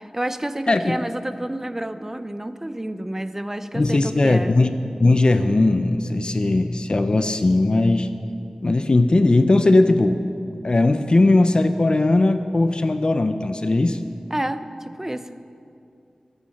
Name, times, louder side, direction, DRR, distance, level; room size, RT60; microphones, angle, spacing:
voice 1, 0.0-4.5 14.3-15.4, right 1 dB, 20° right, 10 dB, 0.6 m, -29 dB
voice 2, 0.7-1.0 3.7-8.1 8.6-10.2 10.6-14.0, left 2 dB, 45° left, 9 dB, 0.6 m, -18 dB
24.5 x 9.0 x 5.8 m, 2.6 s
wide cardioid pair, 80°, 2 cm